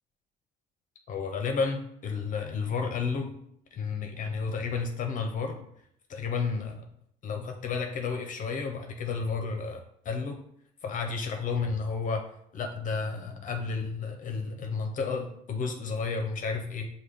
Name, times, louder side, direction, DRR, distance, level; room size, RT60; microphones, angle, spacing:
voice 1, 1.1-3.4 3.7-5.7 6.1-6.8 7.2-10.4 10.8-12.2 12.5-16.9, left 5 dB, 50° left, 3 dB, 0.6 m, -32 dB
6.0 x 2.2 x 3.4 m, 0.72 s
cardioid pair, 110°, 17 cm